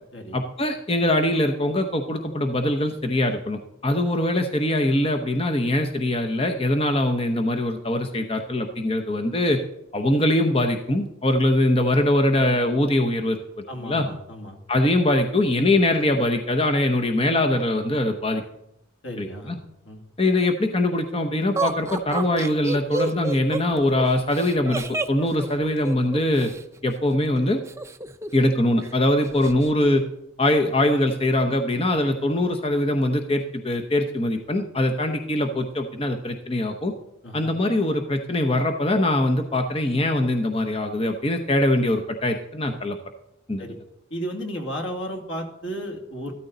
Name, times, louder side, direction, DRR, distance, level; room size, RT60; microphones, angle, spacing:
voice 1, 0.3-9.6 9.9-13.4 13.8-14.0 14.7-18.4 19.2-19.6 20.2-26.5 26.8-27.6 28.3-30.0 30.4-36.9 37.3-43.0 43.5-43.6, left 1 dB, 30° left, 5 dB, 0.9 m, -22 dB
voice 2, 13.7-14.6 19.0-20.0 37.2-37.5 43.6-43.8 44.1-46.3, equal, 75° left, 3 dB, 2.5 m, -34 dB
Laughter, 21.6-26.6 27.7-28.5 28.8-28.9 29.2-29.7, right 2 dB, 15° right, 0.5 m, -30 dB
14.0 x 13.0 x 4.0 m, 0.85 s
head